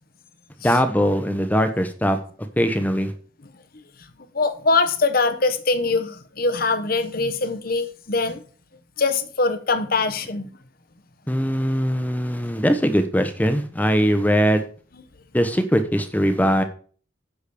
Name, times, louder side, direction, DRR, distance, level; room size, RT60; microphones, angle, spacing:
voice 1, 0.6-2.2 2.6-3.1 11.3-14.6 15.3-16.6, equal, 10° left, 1.0 m, -21 dB
voice 2, 4.3-8.4 9.0-10.5, left 3 dB, 45° left, 1.1 m, -22 dB
10.0 x 5.1 x 6.9 m
head